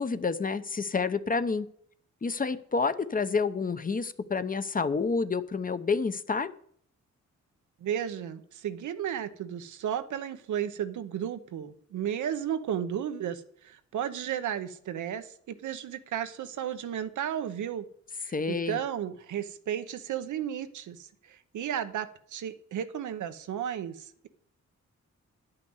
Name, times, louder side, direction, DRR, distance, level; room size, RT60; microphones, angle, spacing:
voice 1, 0.0-1.7 2.2-6.5 18.3-18.8, left 4 dB, 30° left, 13 dB, 0.8 m, -29 dB
voice 2, 7.8-17.9 18.2-24.3, right 9 dB, 90° right, 10 dB, 0.9 m, -34 dB
10.5 x 5.8 x 7.9 m, 0.63 s
cardioid pair, 85°, 29 cm